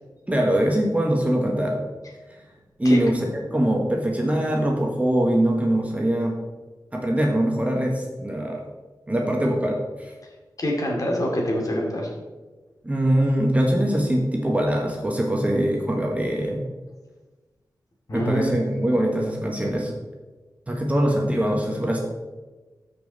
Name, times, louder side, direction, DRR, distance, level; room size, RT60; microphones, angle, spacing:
voice 1, 0.3-1.8 2.8-6.4 6.9-8.6 9.1-10.1 12.8-16.7 18.1-20.0 20.7-22.0, right 1 dB, 20° right, 0 dB, 1.4 m, -22 dB
voice 2, 10.6-12.1 18.1-18.6, equal, 50° left, -1 dB, 2.5 m, -25 dB
13.0 x 5.4 x 4.1 m, 1.2 s
wide cardioid pair, 95°, 7 cm